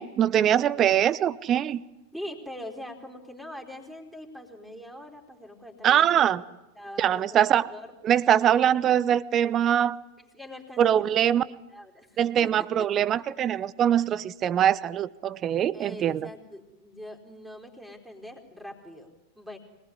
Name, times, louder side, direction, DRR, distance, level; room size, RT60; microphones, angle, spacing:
voice 1, 0.0-1.8 5.8-6.4 7.0-7.7 8.0-10.0 10.8-11.4 12.2-16.3, right 10 dB, 30° right, 20 dB, 0.9 m, -23 dB
voice 2, 2.1-6.5 6.7-7.9 10.2-11.3 11.7-13.1 15.7-19.6, left 1 dB, ahead, 3 dB, 4.4 m, -43 dB
25.5 x 20.0 x 10.0 m, 1.0 s
figure-of-eight pair, 90°, 0 cm